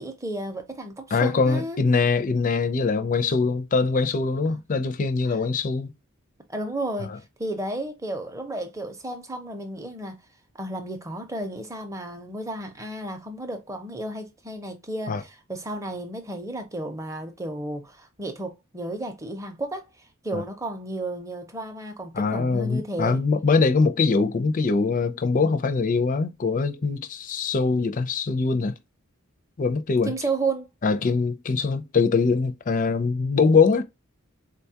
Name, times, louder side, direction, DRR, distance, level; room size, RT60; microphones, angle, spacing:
voice 1, 0.0-1.8 4.5-4.6 6.5-7.1 7.4-10.2 10.6-19.8 20.2-23.2 30.1-30.7, right 2 dB, 15° right, 0.6 m, -32 dB
voice 2, 1.1-5.9 15.1-15.2 20.3-20.4 22.1-28.7 29.6-30.1 30.8-33.8, left 4 dB, 40° left, 0.4 m, -23 dB
3.9 x 2.3 x 2.7 m
head